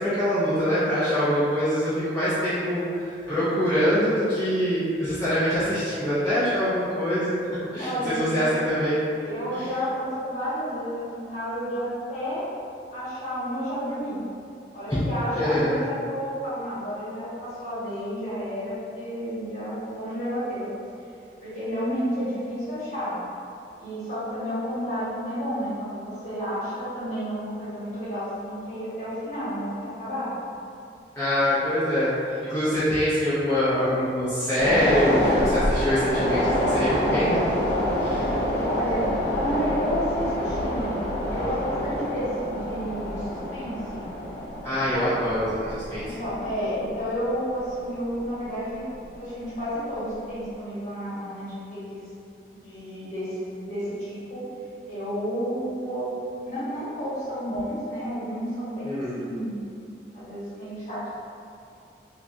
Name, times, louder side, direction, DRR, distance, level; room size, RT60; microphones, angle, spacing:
voice 1, 0.0-9.0 9.5-9.7 15.3-15.7 31.2-32.1 32.4-37.4 38.0-38.3 44.6-46.0 58.8-59.2, equal, 15° left, -14 dB, 0.5 m, -24 dB
voice 2, 7.8-8.5 9.2-12.5 12.9-14.2 14.7-20.7 21.4-23.2 23.8-30.3 38.6-41.0 41.3-44.0 46.0-48.9 49.1-52.1 52.5-54.4 54.9-56.1 56.4-59.7 60.1-61.1, equal, 40° left, -12 dB, 1.2 m, -31 dB
sound 1, 34.6-49.1 49.5-49.6, equal, 65° left, 0.9 m, -27 dB
3.1 x 2.3 x 2.6 m, 2.5 s
head